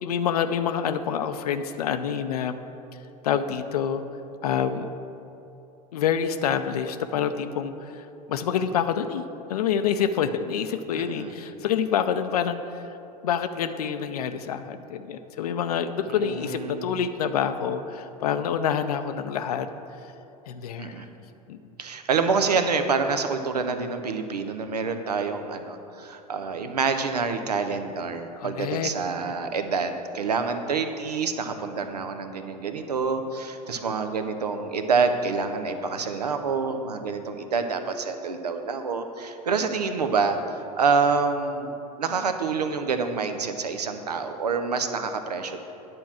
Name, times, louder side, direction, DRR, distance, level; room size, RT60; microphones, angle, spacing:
voice 1, 0.0-2.5 3.2-4.0 4.4-4.9 5.9-9.2 9.5-12.6 13.2-19.7 20.5-21.0 21.5-21.6 28.4-28.9, left 8 dB, 75° left, 9 dB, 0.5 m, -27 dB
voice 2, 10.9-11.3 16.1-16.9 20.8-21.1 21.8-45.6, right 5 dB, 85° right, 8 dB, 0.7 m, -27 dB
9.6 x 4.6 x 7.3 m, 2.8 s
figure-of-eight pair, 80°, 20 cm